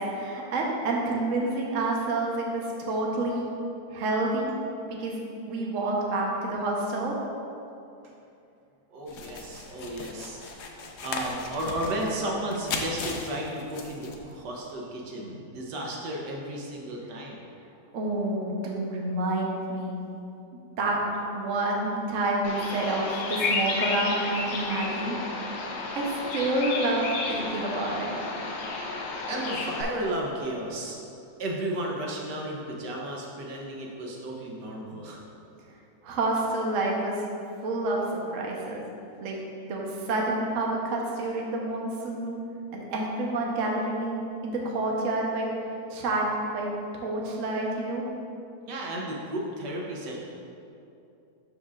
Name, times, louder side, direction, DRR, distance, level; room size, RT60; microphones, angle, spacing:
voice 1, 0.0-3.5 3.9-4.5 4.9-5.2 5.5-7.2 17.9-20.0 20.8-21.0 21.3-25.2 25.9-28.1 36.0-37.2 37.6-38.0 38.3-38.9 39.2-39.4 39.6-42.4 42.7-45.5 45.9-46.2 46.5-48.0, right 2 dB, 55° right, -2 dB, 1.1 m, -28 dB
voice 2, 8.9-10.4 11.0-17.4 29.3-31.0 31.4-35.2 48.7-50.2, right 1 dB, 75° right, -1 dB, 1.5 m, -33 dB
sound 1, 9.1-14.3, left 3 dB, 65° left, 0.7 m, -37 dB
Bird vocalization bird call bird song, 22.4-29.8, left 3 dB, 85° left, 1.5 m, -32 dB
12.0 x 5.0 x 2.4 m, 2.7 s
omnidirectional pair, 1.9 m